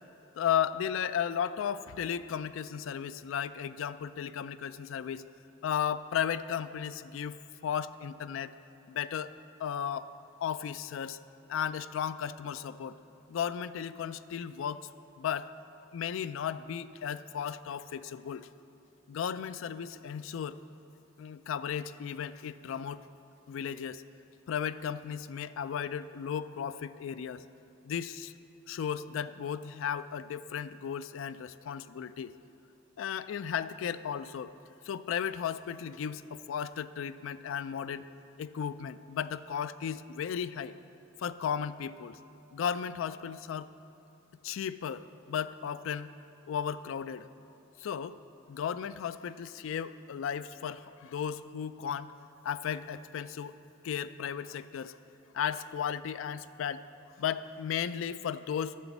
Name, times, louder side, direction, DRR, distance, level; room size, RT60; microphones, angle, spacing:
voice 1, 0.4-5.2 5.6-7.3 7.6-8.5 8.9-9.3 9.6-10.1 10.4-11.2 11.5-13.0 13.3-14.9 15.2-15.5 15.9-18.5 19.1-20.6 21.2-23.0 23.5-24.0 24.5-27.4 27.8-28.3 28.7-32.3 33.0-34.5 34.9-38.0 38.4-40.7 41.2-42.2 42.5-43.7 44.4-46.1 46.5-47.3 47.8-48.2 48.5-52.1 52.4-53.5 53.8-55.0 55.3-56.8 57.2-58.8, left 8 dB, 70° left, 15 dB, 0.3 m, -35 dB
9.1 x 6.0 x 7.0 m, 2.8 s
head